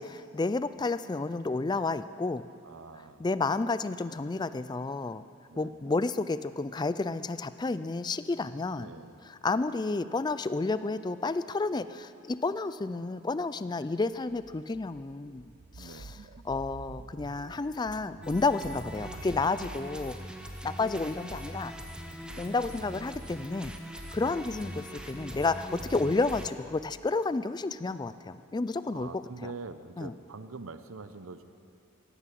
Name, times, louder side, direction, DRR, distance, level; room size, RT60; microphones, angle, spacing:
voice 1, 0.0-2.5 3.2-5.2 5.6-8.9 9.2-15.4 15.8-16.2 16.4-20.1 20.6-21.7 22.4-23.7 24.1-29.5 30.0-30.1, left 3 dB, 20° left, 14 dB, 0.3 m, -31 dB
voice 2, 2.6-3.2 5.5-5.8 8.7-9.2 15.7-16.2 22.2-22.5 28.9-31.4, right 3 dB, 75° right, 11 dB, 0.8 m, -44 dB
sound 1, 14.0-19.8, right 3 dB, 45° right, 0.4 m, -49 dB
sound 2, 18.2-26.5, equal, 5° right, 0.7 m, -42 dB
16.5 x 9.9 x 7.6 m, 2.5 s
head